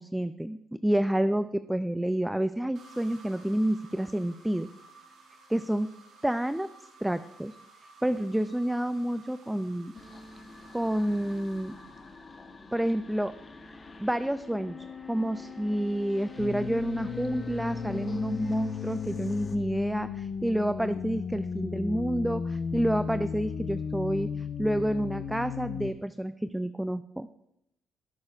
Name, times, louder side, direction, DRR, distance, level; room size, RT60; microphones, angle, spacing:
voice 1, 0.0-4.7 5.5-5.9 6.2-6.7 7.0-7.6 8.0-9.9 10.7-11.7 12.7-13.3 14.0-14.8 15.1-27.3, right 1 dB, 5° right, 12 dB, 0.3 m, -29 dB
sound 1, 2.7-12.7, right 3 dB, 70° right, 2.9 m, -55 dB
sound 2, 9.9-19.6, left 5 dB, 30° left, 1.0 m, -45 dB
sound 3, 16.4-25.9, left 6 dB, 55° left, 0.6 m, -35 dB
16.5 x 6.4 x 2.4 m, 0.81 s
cardioid pair, 90°, 0 cm